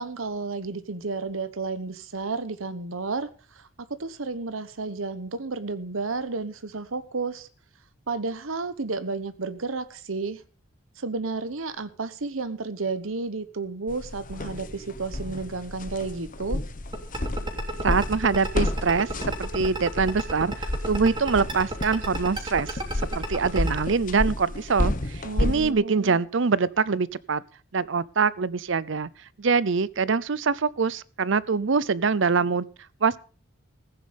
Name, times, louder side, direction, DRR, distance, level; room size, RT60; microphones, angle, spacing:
voice 1, 0.0-3.3 3.5-3.6 4.0-7.5 8.1-10.4 11.0-16.6 25.2-26.2, right 3 dB, 80° right, 1.1 m, -32 dB
sound 1, 13.9-25.7, left 1 dB, 40° left, 1.2 m, -31 dB
sound 2, 16.9-23.8, right 1 dB, 25° right, 3.2 m, -31 dB
voice 2, 17.8-19.1 19.4-22.8 23.1-27.4 27.7-29.1 29.4-32.7 33.0-33.2, right 5 dB, 65° right, 0.6 m, -24 dB
15.0 x 10.0 x 5.2 m
head